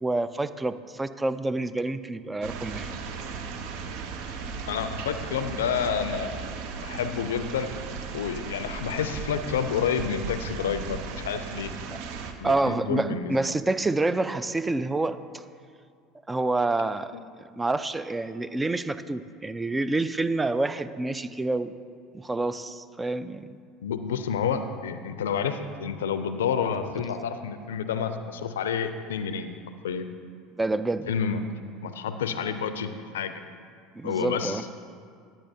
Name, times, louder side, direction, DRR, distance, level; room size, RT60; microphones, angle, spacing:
voice 1, 0.0-2.9 11.9-12.0 12.4-15.4 16.3-17.1 17.5-21.7 22.1-23.5 30.6-31.1 34.0-34.6, right 2 dB, 15° right, 13 dB, 0.3 m, -28 dB
sound 1, 2.4-12.3, right 5 dB, 65° right, 0.6 m, -36 dB
voice 2, 4.7-6.4 6.8-7.7 8.1-11.7 12.4-13.3 17.1-17.2 23.8-29.5 29.8-30.1 31.1-31.4 31.8-33.4 34.0-34.7, left 7 dB, 85° left, 10 dB, 0.4 m, -29 dB
9.9 x 8.8 x 2.7 m, 2.2 s
hypercardioid pair, 80°, 0 cm